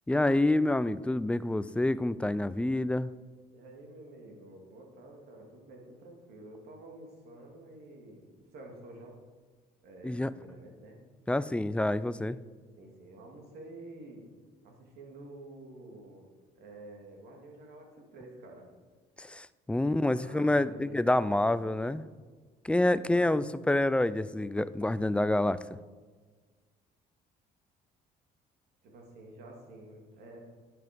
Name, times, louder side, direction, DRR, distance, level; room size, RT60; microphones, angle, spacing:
voice 1, 0.1-3.1 10.0-10.3 11.3-12.4 19.2-22.0 22.6-25.6, left 1 dB, 5° left, 16 dB, 0.3 m, -27 dB
voice 2, 3.5-9.2 9.8-11.0 12.8-14.2 14.6-16.3 16.5-18.7 19.7-22.1 23.1-23.3 28.8-30.4, right 2 dB, 75° right, 1 dB, 2.6 m, -50 dB
11.0 x 7.8 x 5.3 m, 1.4 s
cardioid pair, 110°, 17 cm